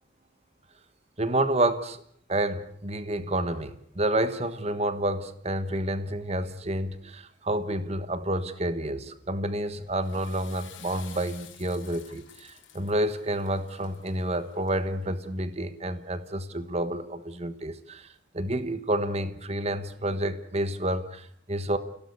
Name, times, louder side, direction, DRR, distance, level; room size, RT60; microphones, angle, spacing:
voice 1, 1.2-2.0 2.3-18.1 18.3-21.8, right 1 dB, 35° right, 12 dB, 1.4 m, -29 dB
Water / Toilet flush, 9.8-15.1, left 10 dB, 80° left, 3.8 m, -51 dB
28.5 x 17.5 x 8.3 m, 0.65 s
head